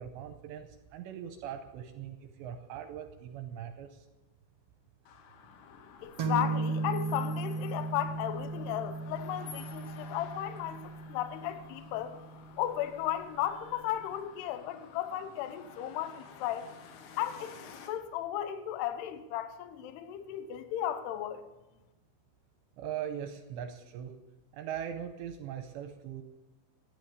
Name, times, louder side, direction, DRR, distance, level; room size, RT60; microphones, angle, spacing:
voice 1, 0.0-4.1 22.8-24.1 24.5-26.2, right 9 dB, 80° right, 2.7 m, -40 dB
sound 1, 5.1-17.9, left 7 dB, 90° left, 4.0 m, -52 dB
voice 2, 6.0-12.2 12.6-16.7 17.2-17.6 17.9-21.4, left 11 dB, 75° left, 2.7 m, -35 dB
sound 2, 6.2-13.7, right 3 dB, 65° right, 1.4 m, -36 dB
15.0 x 10.5 x 7.0 m
omnidirectional pair, 5.6 m